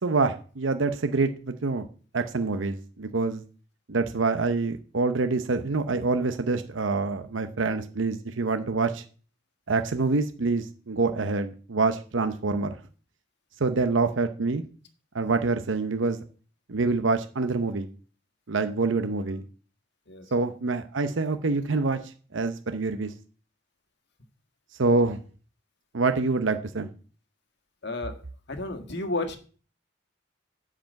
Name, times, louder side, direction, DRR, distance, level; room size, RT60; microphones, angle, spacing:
voice 1, 0.0-1.9 2.1-3.4 3.9-9.0 9.7-12.7 13.6-14.6 15.1-16.2 16.7-17.9 18.5-19.4 20.3-23.1 24.8-25.2 25.9-26.9, right 3 dB, 80° right, 9 dB, 0.8 m, -26 dB
voice 2, 27.8-28.2 28.5-29.4, left 2 dB, 60° left, 7 dB, 1.7 m, -32 dB
10.5 x 5.0 x 7.7 m, 0.39 s
head